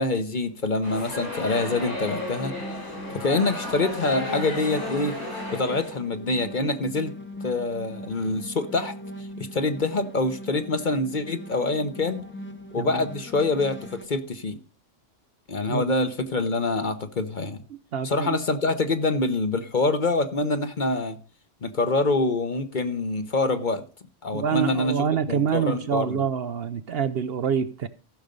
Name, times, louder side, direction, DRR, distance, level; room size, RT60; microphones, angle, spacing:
voice 1, 0.0-2.5 3.1-5.1 5.5-7.1 7.4-8.9 9.4-12.2 12.7-14.6 15.5-17.6 18.0-21.2 21.6-23.8 24.2-26.3, left 2 dB, 40° left, 1.1 m, -25 dB
sound 1, 0.8-6.0, left 2 dB, 75° left, 6.7 m, -33 dB
sound 2, 1.4-14.1, equal, 10° left, 0.8 m, -40 dB
voice 2, 12.8-13.1 15.7-15.8 17.9-18.4 24.3-27.9, right 8 dB, 60° right, 0.8 m, -26 dB
15.0 x 6.5 x 5.3 m
omnidirectional pair, 1.3 m